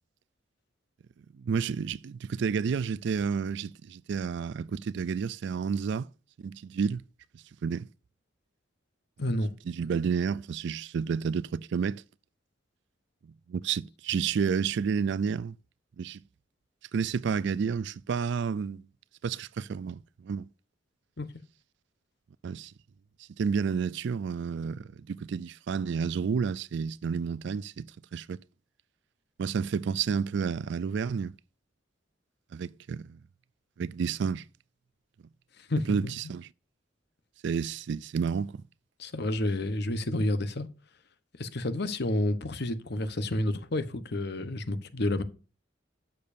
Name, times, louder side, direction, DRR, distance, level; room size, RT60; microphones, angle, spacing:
voice 1, 1.4-6.1 6.4-7.0 7.6-7.9 9.7-12.0 13.2-15.5 16.0-16.2 16.9-18.8 19.2-20.5 22.4-22.7 23.4-27.9 28.1-28.4 29.4-31.3 32.5-33.2 33.8-34.4 35.9-36.5 37.4-38.6, right 6 dB, 65° right, 0.4 m, -30 dB
voice 2, 9.2-9.5 21.2-21.3 35.7-36.2 39.0-40.7 41.4-45.2, left 1 dB, 60° left, 1.0 m, -30 dB
12.0 x 6.9 x 2.6 m
head